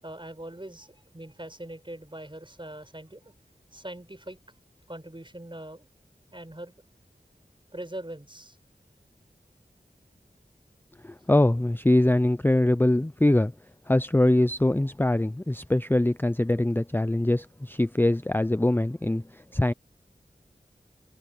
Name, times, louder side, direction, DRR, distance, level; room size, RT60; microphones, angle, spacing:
voice 1, 0.0-3.3 3.7-4.4 4.9-5.9 6.3-6.7 7.7-8.6, right 1 dB, 30° right, 7.0 m, -41 dB
voice 2, 11.0-13.5 13.9-19.7, left 1 dB, 10° left, 0.5 m, -23 dB
wide cardioid pair, 40°, 17 cm